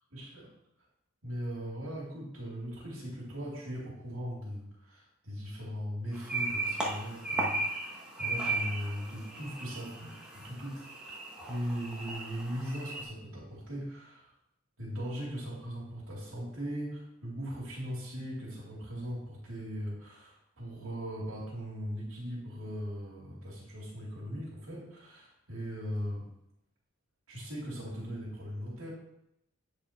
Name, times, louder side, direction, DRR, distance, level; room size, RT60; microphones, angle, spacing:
voice 1, 0.1-0.5 1.2-11.2 11.5-14.3 14.8-26.3 27.3-28.9, equal, 75° right, -6 dB, 2.6 m, -39 dB
sound 1, 6.1-13.0, right 2 dB, 5° right, 1.4 m, -36 dB
8.8 x 4.9 x 4.3 m, 0.80 s
head